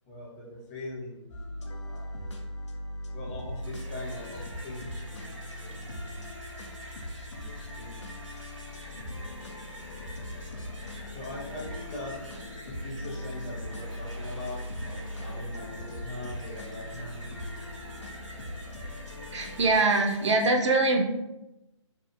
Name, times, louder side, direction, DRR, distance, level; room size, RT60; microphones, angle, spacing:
voice 1, 0.1-1.3 1.8-2.1 3.1-6.2 7.3-8.0 11.1-12.2 12.7-17.3, left 2 dB, 20° left, -4 dB, 0.6 m, -41 dB
sound 1, 1.3-19.8, left 1 dB, 65° left, 0.5 m, -40 dB
sound 2, 3.5-20.5, right 1 dB, 80° right, 1.0 m, -47 dB
sound 3, 8.8-19.7, left 3 dB, 50° left, 0.9 m, -50 dB
voice 2, 19.3-21.0, right 2 dB, 65° right, 3 dB, 0.5 m, -23 dB
2.7 x 2.4 x 2.5 m, 0.93 s
hypercardioid pair, 150°, 16 cm